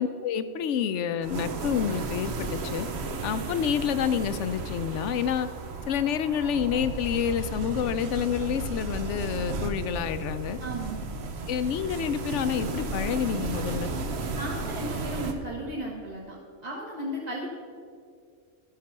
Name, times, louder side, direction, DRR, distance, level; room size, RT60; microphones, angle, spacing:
voice 1, 0.0-2.9 3.2-5.5 5.9-10.6 11.5-13.9, left 8 dB, 75° left, 12 dB, 0.9 m, -28 dB
sound 1, 1.2-15.3, right 3 dB, 60° right, 1.1 m, -34 dB
voice 2, 10.6-11.2 14.3-16.3 16.6-17.5, right 1 dB, 35° right, -4 dB, 1.4 m, -35 dB
12.5 x 5.8 x 6.7 m, 2.2 s
omnidirectional pair, 1.2 m